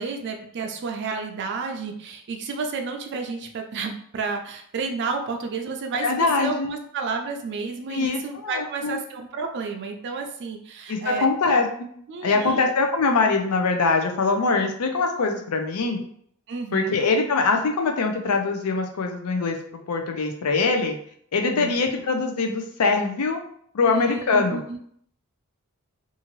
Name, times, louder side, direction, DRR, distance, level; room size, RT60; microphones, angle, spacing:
voice 1, 0.0-11.3 12.1-12.6 16.5-16.9 21.5-21.7 23.8-24.8, right 4 dB, 50° right, 3 dB, 0.4 m, -31 dB
voice 2, 6.0-6.7 7.9-9.0 10.9-11.9 12.2-16.0 16.7-19.6 19.9-21.0 21.3-23.4 23.7-24.6, left 3 dB, 80° left, 4 dB, 0.5 m, -23 dB
2.7 x 2.5 x 3.0 m, 0.64 s
head